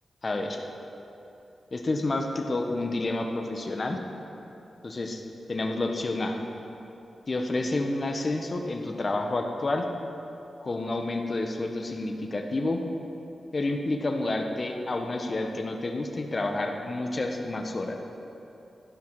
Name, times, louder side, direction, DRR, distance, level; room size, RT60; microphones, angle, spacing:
voice 1, 0.2-0.6 1.7-4.0 4.8-5.2 5.5-6.4 7.3-9.9 10.6-12.8 13.5-18.0, left 2 dB, 45° left, 3 dB, 1.5 m, -29 dB
15.5 x 12.0 x 5.0 m, 2.9 s
cardioid pair, 60°, 0 cm